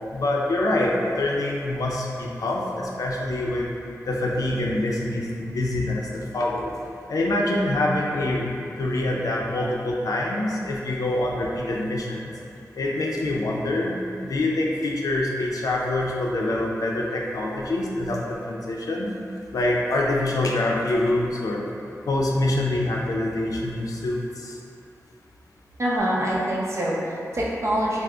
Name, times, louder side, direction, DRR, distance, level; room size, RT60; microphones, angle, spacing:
voice 1, 0.1-3.7 4.1-6.7 7.1-12.2 12.8-19.1 19.5-21.7 22.1-24.5, left 1 dB, 75° left, -2 dB, 0.4 m, -25 dB
voice 2, 25.8-28.0, right 1 dB, 50° right, -5 dB, 0.6 m, -25 dB
3.4 x 2.0 x 3.6 m, 2.5 s
wide cardioid pair, 75°, 6 cm